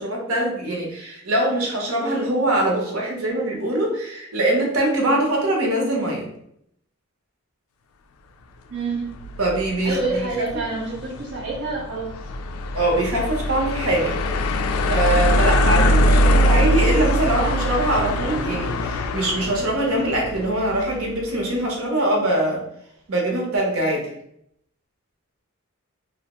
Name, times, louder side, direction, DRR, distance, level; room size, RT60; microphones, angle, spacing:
voice 1, 0.0-6.3 9.4-10.4 12.7-14.2 14.9-22.6 23.1-24.1, right 1 dB, 80° right, -1 dB, 0.8 m, -23 dB
voice 2, 8.7-9.2 9.8-12.1, right 3 dB, 50° right, -4 dB, 0.5 m, -27 dB
sound 1, 9.0-21.2, equal, 80° left, 0.3 m, -22 dB
2.8 x 2.0 x 2.9 m, 0.73 s
head